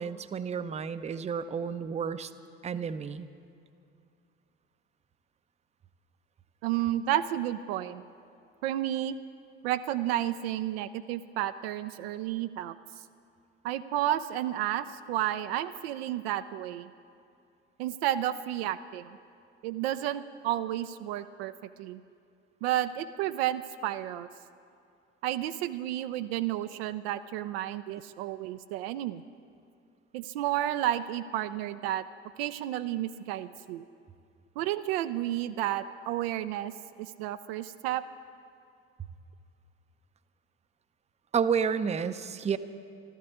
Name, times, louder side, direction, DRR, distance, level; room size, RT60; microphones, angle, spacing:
voice 1, 0.0-2.3 2.6-3.3 41.3-42.6, right 6 dB, 20° right, 12 dB, 0.6 m, -30 dB
voice 2, 6.6-8.0 8.6-9.2 9.6-12.8 13.6-16.9 17.8-19.2 19.6-21.5 21.8-22.0 22.6-24.3 25.2-29.2 30.1-32.1 32.4-33.8 34.6-36.7 37.0-38.0, right 12 dB, 60° right, 10 dB, 0.5 m, -31 dB
14.5 x 13.0 x 7.1 m, 2.5 s
figure-of-eight pair, 55°, 34 cm